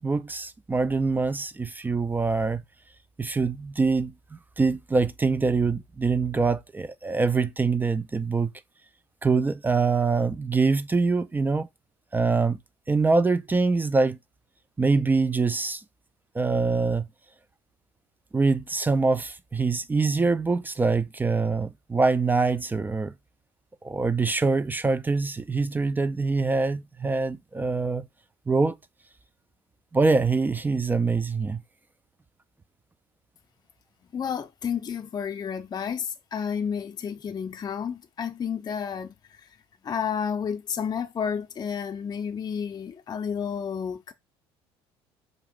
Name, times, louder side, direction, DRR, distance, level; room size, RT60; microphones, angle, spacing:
voice 1, 0.0-2.6 3.2-4.1 4.6-8.5 9.2-11.7 12.1-12.6 12.9-14.2 14.8-15.8 16.4-17.1 18.3-23.1 23.8-28.1 28.5-28.7 29.9-31.6, right 4 dB, 15° right, 0.3 m, -24 dB
voice 2, 34.1-39.4 39.8-44.1, left 7 dB, 30° left, 0.6 m, -31 dB
5.1 x 2.5 x 3.6 m
hypercardioid pair, 65°, 13 cm